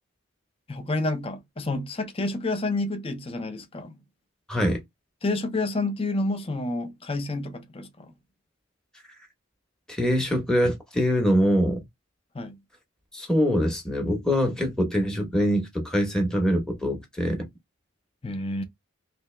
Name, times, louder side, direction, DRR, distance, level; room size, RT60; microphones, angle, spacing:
voice 1, 0.7-4.0 5.2-8.1 12.3-12.6 18.2-18.6, left 2 dB, 25° left, 0.6 m, -29 dB
voice 2, 4.5-4.8 9.9-11.8 13.1-17.5, equal, 5° left, 0.9 m, -24 dB
3.4 x 2.9 x 3.1 m
head